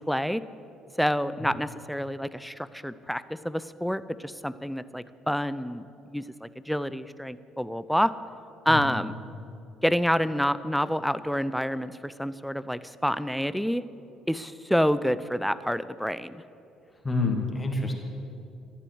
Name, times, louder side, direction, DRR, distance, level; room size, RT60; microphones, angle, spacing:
voice 1, 0.1-0.4 1.0-8.1 8.7-9.2 9.8-13.8 14.3-16.4, equal, ahead, 15 dB, 0.5 m, -28 dB
voice 2, 8.7-9.1 17.0-17.9, left 3 dB, 20° left, 2 dB, 2.5 m, -28 dB
13.5 x 8.4 x 8.0 m, 2.7 s
hypercardioid pair, 55°, 0 cm